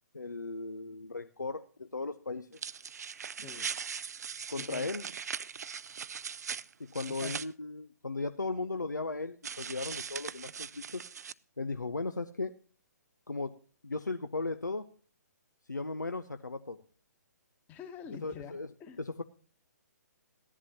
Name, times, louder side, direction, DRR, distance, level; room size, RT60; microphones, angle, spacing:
voice 1, 0.1-2.6 4.5-5.0 6.9-11.0 11.6-12.5 13.3-13.5 13.8-14.8 15.7-16.8 18.2-18.7 19.0-19.2, left 3 dB, 90° left, 9 dB, 0.6 m, -36 dB
sound 1, 2.5-7.5 9.4-11.3, right 7 dB, 65° right, 0.4 m, -40 dB
voice 2, 3.4-3.7 4.6-4.9 7.2-7.4 17.7-19.0, left 7 dB, 20° left, 7 dB, 1.4 m, -46 dB
15.5 x 11.0 x 2.9 m, 0.40 s
figure-of-eight pair, 130°, 10 cm